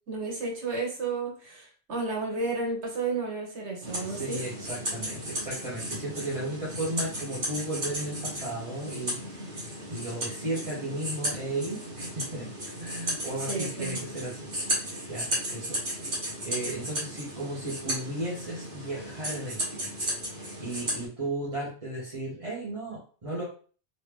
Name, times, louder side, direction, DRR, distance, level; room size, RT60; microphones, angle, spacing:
voice 1, 0.1-4.4 13.5-14.0, right 3 dB, 75° right, -1 dB, 1.5 m, -32 dB
sound 1, 3.8-21.1, equal, 50° right, 1.4 m, -35 dB
voice 2, 4.0-9.2 9.4-9.6 9.9-12.5 12.8-15.8 16.4-19.9 20.3-23.4, right 1 dB, 30° right, -7 dB, 1.1 m, -35 dB
3.1 x 2.9 x 3.3 m, 0.40 s
omnidirectional pair, 1.2 m